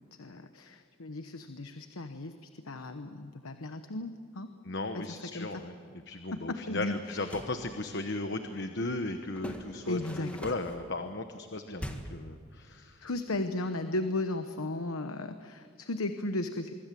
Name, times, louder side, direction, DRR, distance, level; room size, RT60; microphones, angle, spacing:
voice 1, 0.2-4.5 4.9-5.6 6.3-7.4 9.9-10.3 13.0-16.7, left 2 dB, 80° left, 8 dB, 1.1 m, -35 dB
voice 2, 4.6-5.7 6.1-13.1, left 2 dB, 55° left, 7 dB, 1.1 m, -36 dB
sound 1, 7.1-7.6 9.4-10.8 11.8-12.3, equal, 5° left, 1.8 m, -42 dB
24.5 x 24.5 x 7.7 m, 2.3 s
head